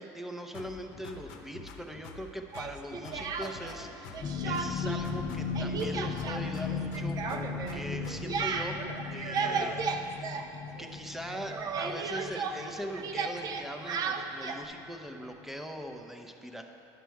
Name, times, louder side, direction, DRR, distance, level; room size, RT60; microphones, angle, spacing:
voice 1, 0.0-8.8 9.1-10.3 10.8-16.6, equal, 5° right, 4 dB, 0.7 m, -41 dB
sound 1, 0.5-2.3 2.5-4.3 4.5-6.3 6.5-8.4, left 4 dB, 90° left, 0.8 m, -47 dB
Speech, 2.5-3.8 4.1-5.0 5.3-11.0 11.2-14.7, right 5 dB, 45° right, 0.6 m, -35 dB
sound 2, 4.2-14.9 15.2-15.5 15.9-16.0, left 5 dB, 45° left, 0.6 m, -37 dB
10.5 x 5.9 x 4.6 m, 2.8 s
supercardioid pair, 110°, 9 cm